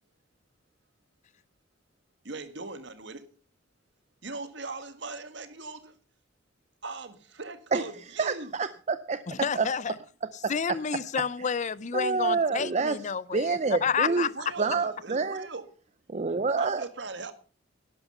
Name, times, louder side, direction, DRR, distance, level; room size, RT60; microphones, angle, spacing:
voice 1, 2.2-3.2 4.2-6.0 6.8-8.5 14.1-15.7 16.6-17.3, right 3 dB, 65° right, 1.7 m, -39 dB
voice 2, 8.2-9.2 9.5-9.7 10.4-10.5 11.9-13.0 13.3-14.3 14.6-15.5 16.1-16.8, right 4 dB, 35° right, 0.6 m, -27 dB
voice 3, 9.3-9.9 10.5-14.3, left 6 dB, 40° left, 0.5 m, -30 dB
11.5 x 11.5 x 5.6 m
head